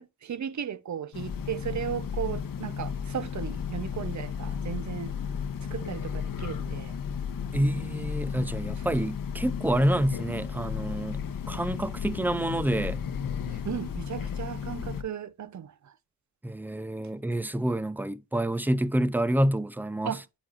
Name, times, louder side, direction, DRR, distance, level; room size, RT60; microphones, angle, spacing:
voice 1, 0.0-5.1 5.7-7.0 13.5-15.7 20.0-20.2, right 9 dB, 45° right, 0.7 m, -35 dB
Train, 1.1-15.0, left 7 dB, 55° left, 1.1 m, -34 dB
voice 2, 7.5-13.0 16.4-20.2, right 1 dB, 5° right, 0.5 m, -28 dB
9.8 x 4.8 x 2.5 m
cardioid pair, 60°, 39 cm